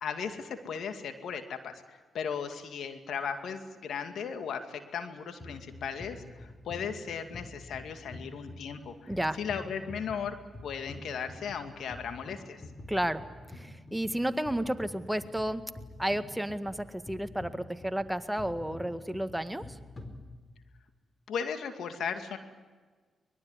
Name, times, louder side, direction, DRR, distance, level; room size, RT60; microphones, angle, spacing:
voice 1, 0.0-10.4 10.6-12.6 21.3-22.4, left 6 dB, 70° left, 7 dB, 2.3 m, -36 dB
sound 1, 5.4-20.8, left 1 dB, 35° left, 4.7 m, -47 dB
voice 2, 9.1-9.4 12.9-13.2 13.5-15.6 16.0-19.7, right 1 dB, 5° right, 10 dB, 1.8 m, -32 dB
23.5 x 21.0 x 9.7 m, 1.4 s
supercardioid pair, 50°, 0 cm